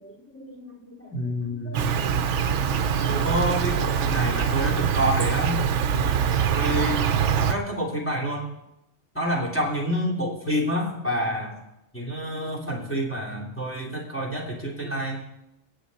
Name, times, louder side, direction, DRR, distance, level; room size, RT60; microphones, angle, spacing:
voice 1, 0.3-2.2 2.6-5.6 6.5-7.1 7.5-8.4 9.1-11.6 11.9-15.2, equal, 10° left, -3 dB, 3.0 m, -28 dB
Insect, 1.7-7.5, right 8 dB, 65° right, 1.0 m, -24 dB
24.0 x 8.3 x 4.2 m, 0.89 s
omnidirectional pair, 1.3 m